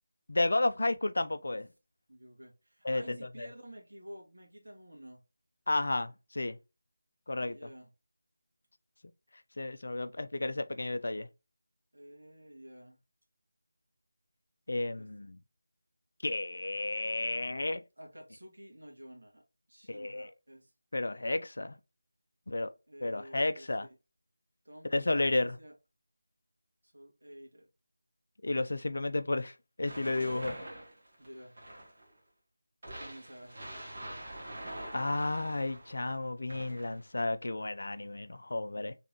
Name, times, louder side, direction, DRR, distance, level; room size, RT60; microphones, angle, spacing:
voice 1, 0.3-1.7 2.8-3.2 5.7-6.6 7.3-7.6 9.6-11.3 14.7-15.4 16.2-17.8 19.9-20.3 20.9-21.8 22.5-22.7 23.0-23.9 24.9-25.6 28.4-30.6 34.9-38.9, left 2 dB, 50° left, 0.4 m, -32 dB
voice 2, 2.1-5.2 7.3-7.9 11.9-13.0 14.9-15.3 18.0-19.4 19.7-20.7 22.9-24.0 24.6-25.7 26.8-27.7 31.2-31.5 33.0-33.7, equal, 60° right, 1.7 m, -51 dB
sound 1, 29.8-32.1 32.8-36.0 36.5-37.1, right 1 dB, 40° right, 1.6 m, -44 dB
4.1 x 3.3 x 2.9 m
figure-of-eight pair, 165°, 0 cm